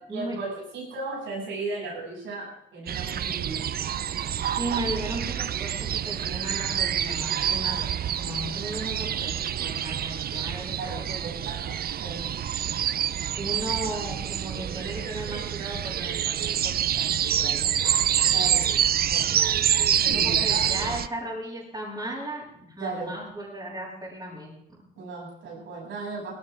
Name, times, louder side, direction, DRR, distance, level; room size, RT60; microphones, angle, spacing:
voice 1, 0.1-3.7 10.8-12.2 18.3-18.7 19.1-19.4 20.1-20.7 22.8-23.1 25.0-26.3, right 3 dB, 80° right, -3 dB, 7.2 m, -35 dB
sound 1, 2.9-21.1, right 10 dB, 50° right, 0.6 m, -27 dB
voice 2, 4.5-9.3 9.6-11.3 13.4-17.8 20.0-24.8, right 1 dB, 20° right, -7 dB, 7.4 m, -36 dB
18.0 x 15.5 x 3.6 m, 0.74 s
cardioid pair, 90°, 20 cm